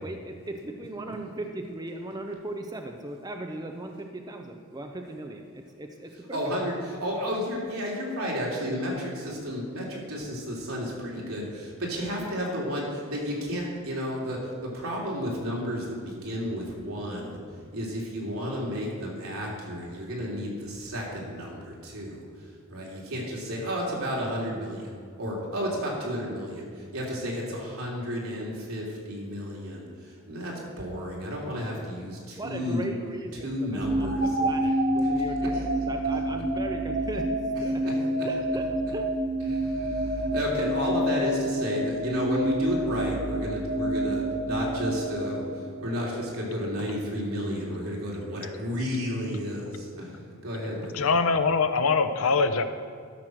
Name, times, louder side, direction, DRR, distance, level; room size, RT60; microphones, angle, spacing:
voice 1, 0.0-6.6 32.3-37.9 38.2-39.1, right 1 dB, 20° right, 4 dB, 0.5 m, -38 dB
voice 2, 6.3-17.4 17.7-22.2 22.7-32.8 33.4-34.2 35.0-35.1 35.5-35.6 37.8-38.2 39.5-51.1, equal, 80° right, -3 dB, 3.1 m, -32 dB
sound 1, 33.8-45.9, right 1 dB, 45° right, 1.8 m, -28 dB
voice 3, 50.9-52.6, left 4 dB, 80° left, 9 dB, 0.7 m, -23 dB
12.5 x 6.2 x 6.4 m, 2.1 s
head